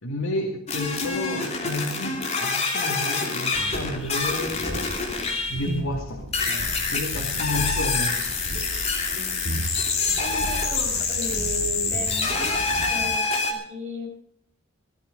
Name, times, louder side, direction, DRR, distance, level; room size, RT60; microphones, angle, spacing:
voice 1, 0.0-4.9 5.5-6.3 6.9-8.4, left 1 dB, 90° left, 0 dB, 2.5 m, -31 dB
sound 1, 0.7-5.8 6.3-13.5, left 4 dB, 30° left, 2.9 m, -26 dB
sound 2, 3.5-13.2, equal, 55° right, 2.4 m, -35 dB
voice 2, 10.2-14.1, left 1 dB, 35° right, -1 dB, 5.1 m, -35 dB
18.5 x 12.5 x 5.2 m, 0.63 s
head